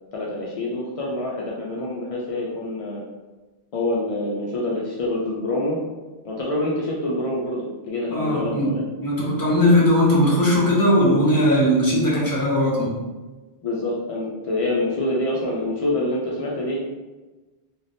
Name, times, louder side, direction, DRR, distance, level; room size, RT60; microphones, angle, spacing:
voice 1, 0.1-3.0 3.7-5.8 6.2-8.8 13.6-16.8, left 1 dB, 60° left, -4 dB, 0.3 m, -26 dB
voice 2, 8.1-8.7 9.0-12.9, equal, 20° left, -5 dB, 0.7 m, -19 dB
3.2 x 2.1 x 2.6 m, 1.2 s
omnidirectional pair, 1.1 m